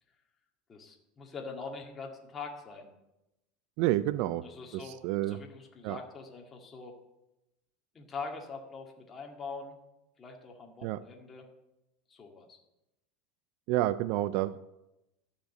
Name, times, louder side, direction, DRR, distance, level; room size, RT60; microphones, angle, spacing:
voice 1, 0.7-2.9 4.4-7.0 7.9-9.8 10.2-11.5 12.1-12.6, left 4 dB, 25° left, 1 dB, 2.0 m, -43 dB
voice 2, 3.8-4.5 4.7-5.4 5.8-6.0 10.8-11.0 13.7-14.6, right 15 dB, 60° right, 15 dB, 0.4 m, -29 dB
13.0 x 5.3 x 8.0 m, 0.93 s
supercardioid pair, 125°, 0 cm